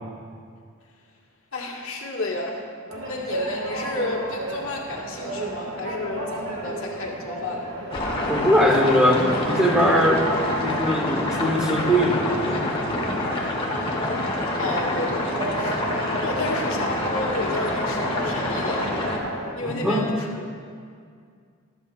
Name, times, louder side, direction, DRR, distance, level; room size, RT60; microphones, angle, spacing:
voice 1, 1.5-2.6 3.0-7.7 14.6-15.9 16.2-18.9 19.5-20.5, left 2 dB, 80° left, -1 dB, 1.6 m, -31 dB
sound 1, 2.9-19.5, right 1 dB, 75° right, 1.7 m, -33 dB
sound 2, 7.9-19.2, left 1 dB, 25° left, 1.1 m, -27 dB
voice 2, 8.3-10.3 10.6-13.2 19.6-20.0, equal, 5° right, -1 dB, 0.9 m, -21 dB
13.5 x 12.5 x 2.4 m, 2.1 s
head